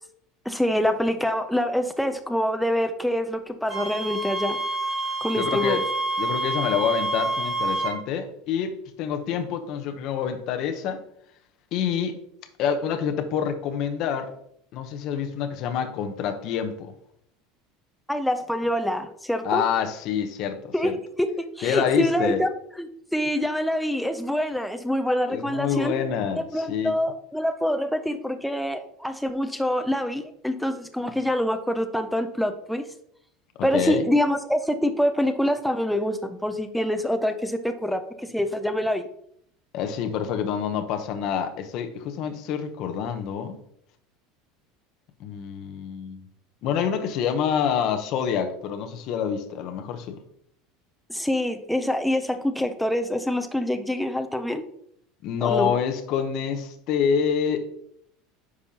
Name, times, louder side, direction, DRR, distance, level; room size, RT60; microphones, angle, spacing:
voice 1, 0.5-4.6 5.2-5.8 18.1-19.6 20.7-21.3 21.6-22.5 22.8-25.9 26.5-32.9 33.6-39.0 51.1-54.6 55.4-55.8, equal, ahead, 7 dB, 0.4 m, -25 dB
Wind instrument woodwind instrument, 3.7-8.0, right 2 dB, 15° right, 2.3 m, -28 dB
voice 2, 5.4-5.8 6.2-11.0 11.7-12.2 12.6-14.3 14.7-16.9 19.4-21.0 21.6-22.4 25.3-26.9 33.6-34.0 39.7-43.6 45.2-46.2 46.6-50.2 55.2-57.7, left 7 dB, 45° left, 6 dB, 0.8 m, -27 dB
9.8 x 5.3 x 2.8 m, 0.70 s
cardioid pair, 170°, 0 cm